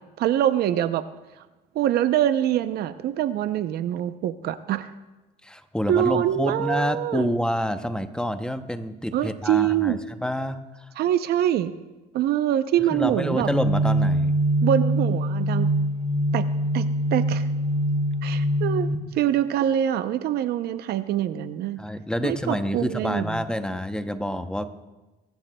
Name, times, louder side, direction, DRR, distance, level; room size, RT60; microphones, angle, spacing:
voice 1, 0.2-1.1 1.7-4.9 5.9-7.3 9.1-10.0 11.0-11.7 12.1-13.5 14.6-15.7 16.3-16.5 16.7-17.5 18.2-21.8 22.2-23.4, right 11 dB, 70° right, 12 dB, 0.6 m, -24 dB
voice 2, 5.4-10.9 12.9-14.4 21.8-24.7, equal, 5° left, 9 dB, 0.7 m, -28 dB
sound 1, 13.4-18.9, right 1 dB, 35° right, 1.6 m, -23 dB
22.5 x 11.5 x 2.2 m, 1.1 s
cardioid pair, 110°, 17 cm